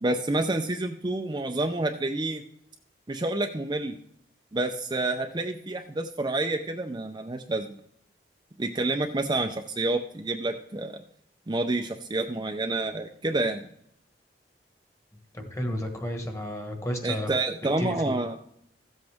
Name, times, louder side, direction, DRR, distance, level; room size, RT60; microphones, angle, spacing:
voice 1, 0.0-2.4 3.1-3.9 4.5-7.7 8.6-11.0 11.5-13.7 17.0-18.4, right 2 dB, 25° right, 4 dB, 0.6 m, -28 dB
voice 2, 15.3-17.3 17.8-18.1, equal, 15° left, 4 dB, 1.5 m, -32 dB
14.5 x 7.9 x 3.5 m, 0.70 s
head